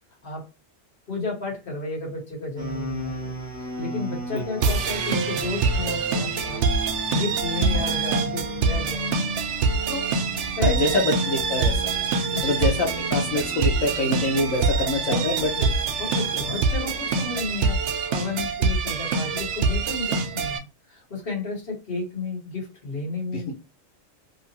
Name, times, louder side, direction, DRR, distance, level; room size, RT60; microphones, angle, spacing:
voice 1, 1.1-6.6 7.1-9.1 9.9-10.1 10.6-11.0 12.3-12.6 15.1-15.7 16.0-23.5, left 3 dB, 45° left, 1.5 m, -32 dB
sound 1, 2.6-17.7, right 1 dB, 15° right, 1.1 m, -36 dB
sound 2, 4.6-20.6, right 4 dB, 65° right, 0.9 m, -25 dB
voice 2, 10.6-11.8 12.4-15.5 16.5-16.6 23.3-23.5, left 2 dB, 80° left, 1.2 m, -25 dB
2.9 x 2.4 x 2.8 m
omnidirectional pair, 1.4 m